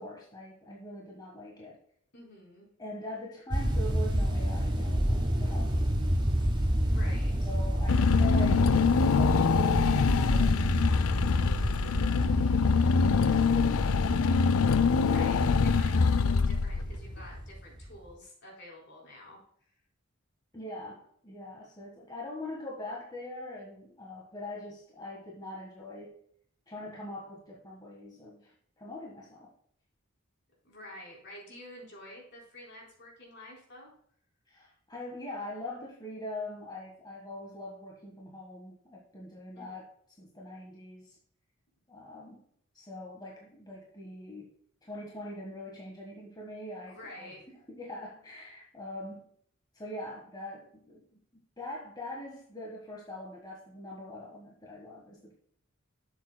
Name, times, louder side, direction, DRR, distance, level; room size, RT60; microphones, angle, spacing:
voice 1, 0.0-1.8 2.8-6.0 7.0-7.2 7.4-10.6 12.2-13.2 13.5-14.5 20.5-26.2 26.7-29.5 34.5-39.8 40.2-41.2 41.9-42.4 42.7-44.5 44.8-47.3 47.7-49.3 49.7-55.3, left 1 dB, 20° left, -3 dB, 1.4 m, -43 dB
voice 2, 2.1-2.7 6.9-7.5 14.8-19.4 30.6-33.9 39.5-39.8 46.9-47.4, left 1 dB, 55° left, -2 dB, 3.9 m, -49 dB
sound 1, 3.5-18.1, equal, 20° right, 1.2 m, -30 dB
Car / Engine, 7.9-17.1, left 5 dB, 85° left, 0.5 m, -24 dB
12.0 x 7.2 x 2.2 m, 0.65 s
head